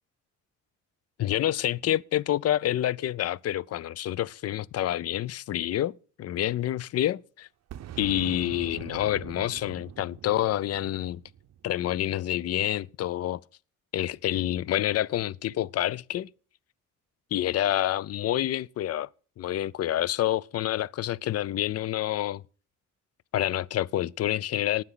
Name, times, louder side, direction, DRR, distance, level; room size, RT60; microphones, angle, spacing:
voice 1, 1.2-7.5 8.0-11.2 11.6-13.4 13.9-16.3 17.3-19.1 19.4-22.4 23.3-24.8, left 12 dB, 50° left, 0.5 m, -28 dB
Boom, 7.7-12.4, right 11 dB, 55° right, 0.7 m, -43 dB
19.5 x 7.2 x 3.9 m
cardioid pair, 85°, 31 cm